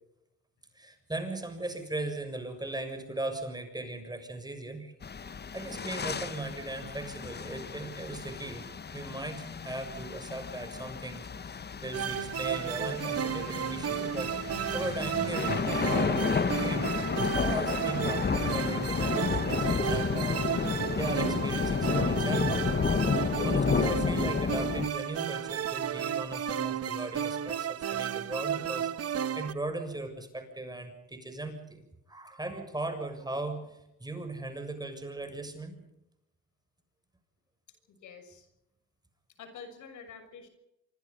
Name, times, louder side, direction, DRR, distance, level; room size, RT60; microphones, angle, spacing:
voice 1, 0.8-4.9 5.5-8.6 8.9-14.3 14.7-16.8 17.4-22.7 23.4-35.8, right 2 dB, 15° right, 6 dB, 7.0 m, -38 dB
sound 1, 5.0-24.9, left 5 dB, 35° left, 1.3 m, -31 dB
sound 2, 11.9-29.5, right 9 dB, 55° right, 1.3 m, -33 dB
voice 2, 37.9-38.5 39.4-40.5, left 5 dB, 75° left, 8 dB, 6.5 m, -47 dB
26.0 x 25.5 x 5.5 m, 0.86 s
cardioid pair, 90°, 30 cm